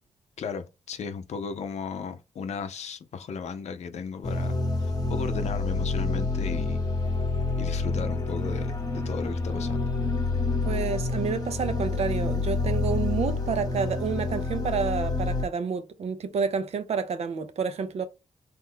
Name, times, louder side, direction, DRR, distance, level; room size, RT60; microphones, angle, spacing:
voice 1, 0.4-4.6 4.8-6.8 7.6-9.8, left 6 dB, 70° left, 0.6 m, -35 dB
sound 1, 4.2-15.4, left 3 dB, 35° left, 0.9 m, -28 dB
voice 2, 10.6-18.0, right 5 dB, 65° right, 0.6 m, -29 dB
3.0 x 2.1 x 3.7 m
cardioid pair, 60°, 12 cm